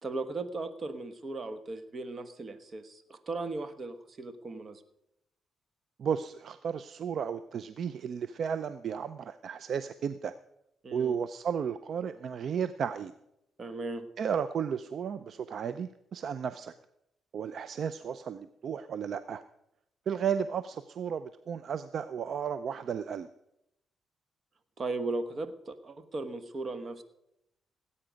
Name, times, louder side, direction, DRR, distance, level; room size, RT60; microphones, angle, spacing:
voice 1, 0.0-4.8 10.8-11.2 13.6-14.1 24.8-27.0, right 3 dB, 40° right, 11 dB, 1.2 m, -37 dB
voice 2, 6.0-10.3 10.9-13.1 14.2-16.7 17.3-19.4 20.1-23.3, right 7 dB, 60° right, 13 dB, 0.5 m, -33 dB
18.0 x 8.7 x 5.2 m, 0.83 s
cardioid pair, 100°, 0 cm